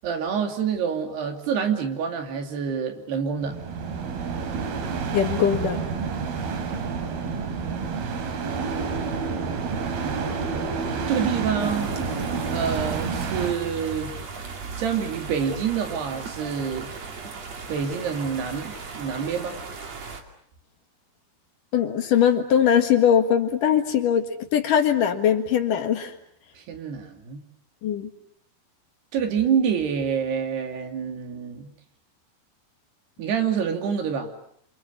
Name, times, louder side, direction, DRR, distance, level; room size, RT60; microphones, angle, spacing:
voice 1, 0.0-3.6 11.1-11.9 12.5-14.1 14.8-16.9 17.7-19.6 26.6-27.4 29.1-31.7 33.2-34.3, right 7 dB, 85° right, 4 dB, 4.8 m, -27 dB
sound 1, 3.4-13.5, right 5 dB, 70° right, 4.4 m, -29 dB
voice 2, 5.1-5.8 21.7-26.1 27.8-28.1, left 8 dB, 60° left, 6 dB, 3.0 m, -21 dB
sound 2, 11.6-20.2, right 4 dB, 45° right, 3.5 m, -37 dB
28.5 x 27.5 x 7.1 m, 0.66 s
omnidirectional pair, 4.6 m